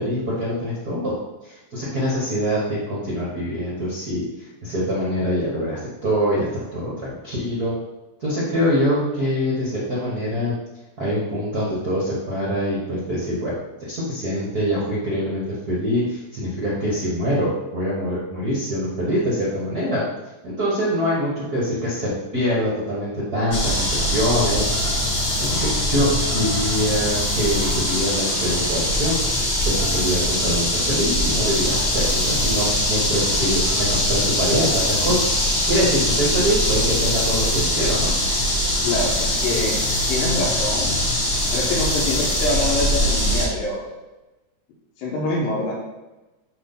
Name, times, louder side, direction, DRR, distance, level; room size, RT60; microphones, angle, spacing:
voice 1, 0.0-7.7 8.2-10.5 11.0-13.5 13.8-20.0 20.4-24.7 25.4-29.2 29.6-35.2 35.7-38.1, equal, 60° right, -6 dB, 0.9 m, -24 dB
sound 1, 23.5-43.5, left 1 dB, 55° left, 1.0 m, -22 dB
voice 2, 38.8-39.8 40.1-41.0 41.5-43.8 45.0-45.8, left 2 dB, 90° left, -5 dB, 2.8 m, -25 dB
7.9 x 3.2 x 5.7 m, 1.1 s
omnidirectional pair, 4.0 m